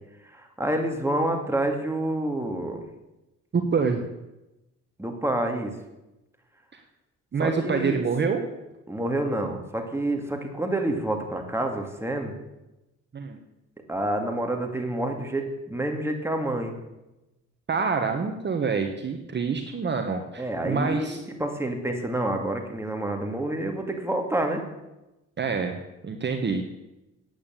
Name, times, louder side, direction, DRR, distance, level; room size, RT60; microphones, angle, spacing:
voice 1, 0.3-2.8 5.0-5.7 7.4-8.0 8.9-12.3 13.9-16.8 20.4-24.6, right 1 dB, 10° right, 3 dB, 2.4 m, -28 dB
voice 2, 3.5-4.0 6.7-6.8 7.3-8.4 13.1-13.4 17.7-21.2 25.4-26.7, right 5 dB, 35° right, 5 dB, 1.2 m, -26 dB
9.1 x 8.6 x 8.9 m, 0.98 s
cardioid pair, 90°, 30 cm